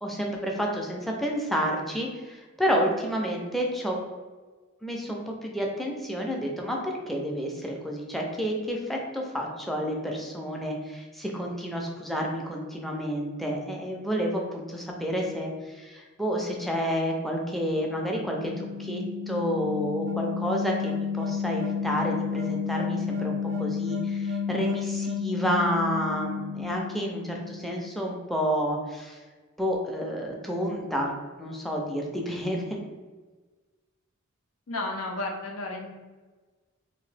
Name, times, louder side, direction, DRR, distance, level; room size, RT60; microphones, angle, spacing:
voice 1, 0.0-4.0 4.8-29.2 29.6-31.1 31.4-32.8, equal, ahead, 0 dB, 0.4 m, -30 dB
sound 1, 17.7-27.9, left 6 dB, 80° right, 0.4 m, -31 dB
voice 2, 34.7-35.9, left 2 dB, 90° left, 1 dB, 0.6 m, -32 dB
2.8 x 2.6 x 3.3 m, 1.3 s
head